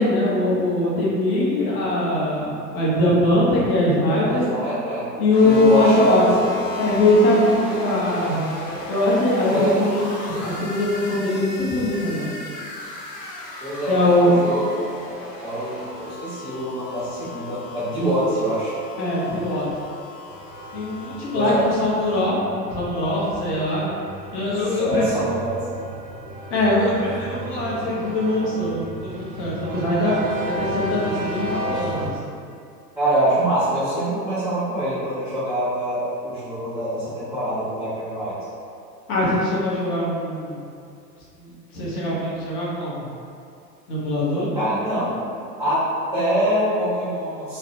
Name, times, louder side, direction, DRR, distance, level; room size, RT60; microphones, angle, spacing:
voice 1, 0.0-4.5 5.2-6.2 6.8-8.4 8.8-12.3 13.9-14.5 19.0-19.7 20.7-23.9 24.3-25.0 26.5-30.2 30.5-32.3 39.1-40.7 41.4-43.1 43.9-44.5, left 1 dB, 30° left, -6 dB, 0.6 m, -21 dB
voice 2, 4.2-5.1 5.4-6.2 9.5-9.8 13.6-14.6 15.4-18.7 21.3-21.6 24.6-25.6 33.0-38.4 44.5-45.3 45.6-47.6, right 1 dB, 5° right, -16 dB, 0.6 m, -24 dB
sound 1, 5.3-22.2, left 2 dB, 85° left, 0.6 m, -35 dB
sound 2, 20.3-32.1, right 1 dB, 55° right, 0.6 m, -33 dB
2.4 x 2.1 x 2.7 m, 2.4 s
figure-of-eight pair, 95°, 49 cm